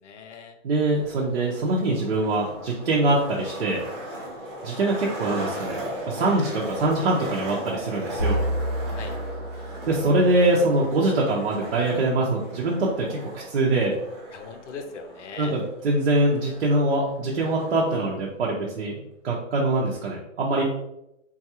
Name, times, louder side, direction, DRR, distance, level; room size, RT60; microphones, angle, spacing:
voice 1, 0.0-0.6 4.6-5.0 8.9-9.1 14.3-15.6, left 5 dB, 65° left, 5 dB, 0.6 m, -40 dB
voice 2, 0.6-3.8 4.6-5.8 6.1-8.4 9.9-14.0 15.4-20.6, right 2 dB, 55° right, -3 dB, 0.7 m, -23 dB
Skateboard, 0.8-17.8, equal, 20° right, 0.8 m, -37 dB
sound 1, 8.2-10.7, equal, 20° left, 0.7 m, -29 dB
3.8 x 2.4 x 2.8 m, 0.86 s
hypercardioid pair, 175°, 39 cm